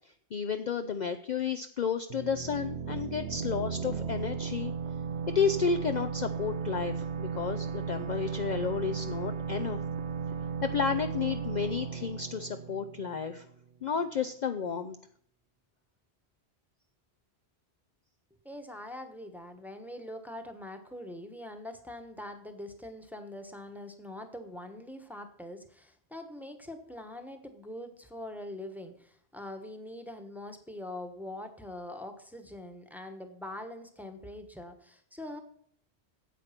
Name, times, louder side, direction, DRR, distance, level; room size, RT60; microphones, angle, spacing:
voice 1, 0.3-4.7 5.3-9.8 10.6-13.4 13.8-15.0, left 6 dB, 50° left, 7 dB, 0.6 m, -31 dB
sound 1, 2.1-13.6, right 6 dB, 85° right, 1.0 m, -35 dB
voice 2, 18.4-35.4, left 1 dB, ahead, 5 dB, 1.2 m, -43 dB
9.2 x 8.1 x 5.9 m, 0.64 s
omnidirectional pair, 1.1 m